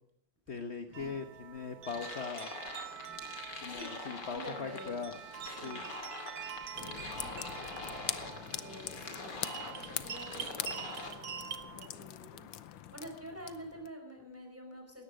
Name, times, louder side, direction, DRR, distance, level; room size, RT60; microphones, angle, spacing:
voice 1, 0.5-2.6 3.6-5.1 5.6-5.8, left 5 dB, 40° left, 8 dB, 1.1 m, -40 dB
sound 1, 0.9-11.9, right 8 dB, 55° right, 1.6 m, -45 dB
sound 2, 1.8-11.1, left 3 dB, 60° left, 3.2 m, -45 dB
voice 2, 4.3-5.0 5.6-5.8 6.7-7.6 8.5-15.0, right 1 dB, 5° right, 2 dB, 4.9 m, -48 dB
sound 3, 6.7-13.9, left 11 dB, 80° left, 1.5 m, -43 dB
18.0 x 13.5 x 5.0 m, 0.67 s
omnidirectional pair, 2.1 m